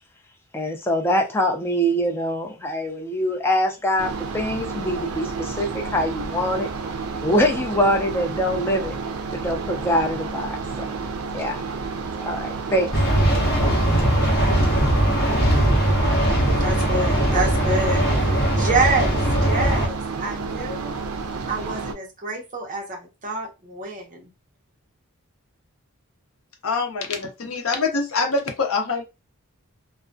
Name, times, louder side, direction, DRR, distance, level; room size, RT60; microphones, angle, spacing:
voice 1, 0.5-6.7 7.2-9.0 9.3-10.9 11.3-11.6 12.2-12.9, equal, 10° left, 0.4 m, -24 dB
sound 1, 4.0-21.9, right 4 dB, 75° right, 0.4 m, -31 dB
sound 2, 12.9-19.9, right 1 dB, 40° left, 0.8 m, -20 dB
voice 2, 16.6-21.0 21.5-24.3, right 3 dB, 35° right, 0.7 m, -27 dB
voice 3, 26.6-29.0, left 4 dB, 70° left, 0.6 m, -24 dB
2.3 x 2.1 x 2.5 m
head